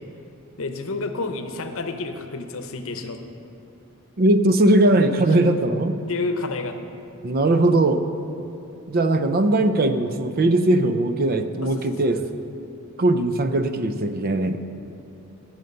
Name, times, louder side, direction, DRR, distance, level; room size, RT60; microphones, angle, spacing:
voice 1, 0.6-3.2 5.3-5.4 6.1-6.8 11.6-12.1, left 3 dB, 65° left, 7 dB, 0.8 m, -30 dB
voice 2, 4.2-6.0 7.2-8.0 8.9-12.2 13.0-14.6, right 1 dB, 45° right, 9 dB, 0.5 m, -19 dB
17.0 x 6.5 x 5.4 m, 2.9 s
head